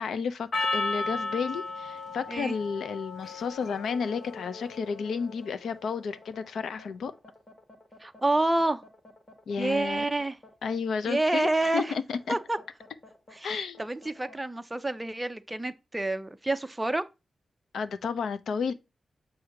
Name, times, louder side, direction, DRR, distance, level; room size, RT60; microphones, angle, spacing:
voice 1, 0.0-7.1 9.5-10.0 10.6-12.4 13.4-13.9 17.7-18.7, left 5 dB, 85° left, 0.6 m, -32 dB
Percussion, 0.5-5.1, left 3 dB, 65° left, 1.0 m, -34 dB
sound 1, 3.5-14.4, left 2 dB, 25° left, 1.5 m, -51 dB
voice 2, 8.0-8.8 9.6-10.4 11.1-11.9 12.3-12.6 13.3-17.0, right 2 dB, 15° right, 0.5 m, -28 dB
6.6 x 2.8 x 5.7 m
wide cardioid pair, 115°, 0 cm